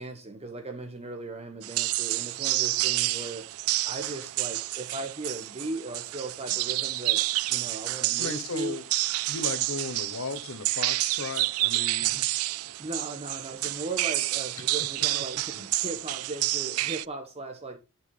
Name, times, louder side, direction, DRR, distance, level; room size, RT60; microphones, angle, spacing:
voice 1, 0.0-3.5 3.8-7.2 7.5-8.8 12.0-17.8, right 2 dB, 30° right, 1.1 m, -38 dB
sound 1, 1.6-17.0, right 18 dB, 70° right, 0.4 m, -29 dB
voice 2, 8.2-8.8 9.3-12.2 14.6-14.9 15.5-15.7, left 3 dB, 60° left, 1.1 m, -36 dB
10.5 x 5.9 x 3.9 m
head